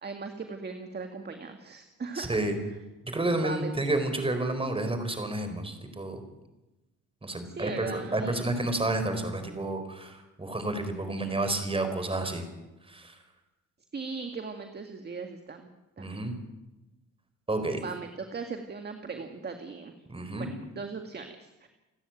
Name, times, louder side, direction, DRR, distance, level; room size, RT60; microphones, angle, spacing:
voice 1, 0.0-2.8 3.3-3.7 7.5-8.4 13.9-15.7 16.0-16.2 17.8-19.9 20.4-21.7, right 4 dB, 35° right, 5 dB, 1.9 m, -39 dB
voice 2, 2.1-2.5 3.0-6.2 7.2-12.4 12.9-13.1 16.0-16.3 17.5-17.8 20.1-20.5, right 2 dB, 20° right, 7 dB, 4.6 m, -30 dB
29.0 x 9.9 x 9.2 m, 1.0 s
cardioid pair, 90°, 30 cm